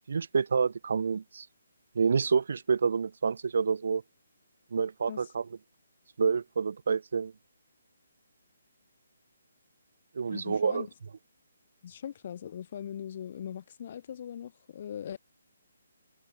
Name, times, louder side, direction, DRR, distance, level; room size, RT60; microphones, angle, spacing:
voice 1, 0.0-1.5 1.9-4.0 4.7-5.5 6.2-7.3 10.1-10.9, right 5 dB, 60° right, 0.7 m, -28 dB
voice 2, 10.2-10.9 11.8-15.2, left 9 dB, 45° left, 1.5 m, -40 dB
figure-of-eight pair, 145°, 0 cm